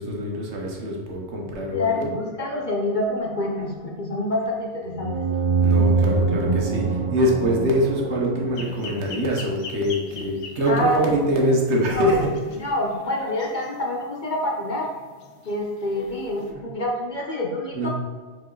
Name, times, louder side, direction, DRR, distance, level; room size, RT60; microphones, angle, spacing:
voice 1, 0.0-2.1 5.6-12.3 16.5-16.6 17.7-17.9, equal, 70° right, -1 dB, 1.4 m, -24 dB
voice 2, 1.7-5.1 10.7-11.1 11.9-12.3 12.5-14.9 15.5-17.9, left 1 dB, 45° left, -1 dB, 0.9 m, -26 dB
sound 1, 5.0-9.5, right 4 dB, 50° right, 0.3 m, -24 dB
sound 2, 8.5-16.5, left 4 dB, 90° left, 1.1 m, -44 dB
5.2 x 4.6 x 3.9 m, 1.5 s
omnidirectional pair, 1.2 m